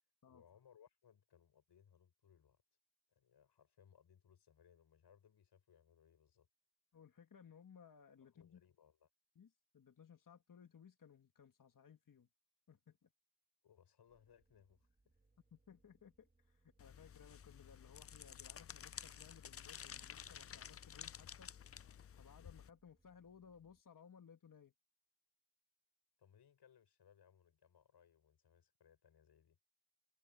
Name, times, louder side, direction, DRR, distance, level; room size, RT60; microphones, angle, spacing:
voice 1, 0.3-2.6 3.1-6.5 8.2-9.1 13.6-15.2 26.2-29.6, left 8 dB, 70° left, 5.5 m, -68 dB
voice 2, 6.9-8.6 9.4-12.3 12.7-13.1 15.5-21.5 22.2-24.7, left 7 dB, 50° left, 2.4 m, -62 dB
sound 1, 14.1-23.8, right 2 dB, 20° right, 2.7 m, -78 dB
sound 2, 16.8-22.7, left 8 dB, 35° left, 0.5 m, -53 dB
cardioid pair, 65°, 41 cm